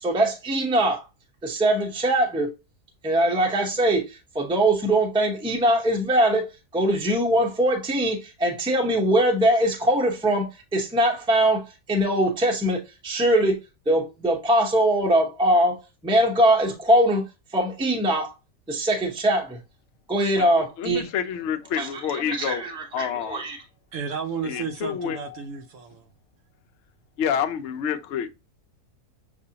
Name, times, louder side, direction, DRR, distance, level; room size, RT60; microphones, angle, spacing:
voice 1, 0.0-1.0 1.4-2.5 3.0-6.5 6.7-13.6 13.9-17.2 17.5-18.3 18.7-19.6 20.1-21.0 21.8-23.6, right 1 dB, 5° right, 0.6 m, -22 dB
voice 2, 20.4-22.6 22.9-23.4 24.4-25.4 27.2-28.3, left 8 dB, 60° left, 0.7 m, -28 dB
voice 3, 23.9-26.1, right 5 dB, 65° right, 0.9 m, -32 dB
6.7 x 2.5 x 2.8 m
omnidirectional pair, 1.7 m